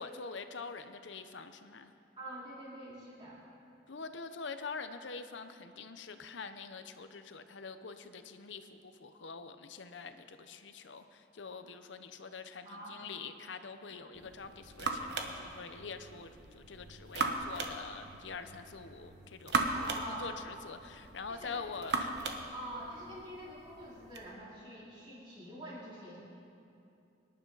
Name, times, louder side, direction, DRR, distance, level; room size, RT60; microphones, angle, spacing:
voice 1, 0.0-1.9 3.9-22.2, left 4 dB, 85° left, 9 dB, 0.8 m, -45 dB
voice 2, 2.2-3.4 12.6-13.0 13.9-14.0 19.7-20.2 21.3-21.5 21.8-21.9 22.5-26.2, right 1 dB, 25° right, -8 dB, 4.3 m, -46 dB
sound 1, 14.1-24.3, right 3 dB, 70° right, 1.2 m, -39 dB
24.0 x 11.0 x 4.0 m, 2.7 s
head